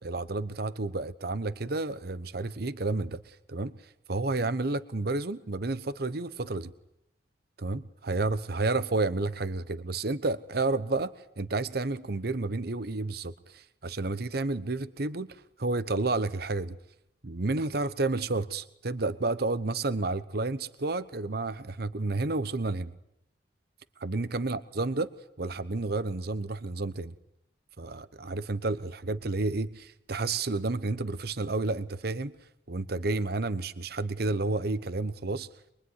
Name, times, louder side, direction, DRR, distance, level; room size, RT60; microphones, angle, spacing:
voice 1, 0.0-3.7 4.1-6.7 7.6-16.8 17.2-22.9 24.0-25.1 25.4-27.1 27.8-32.3 32.7-35.5, right 3 dB, 55° right, 14 dB, 1.0 m, -31 dB
23.5 x 23.0 x 9.7 m, 0.79 s
head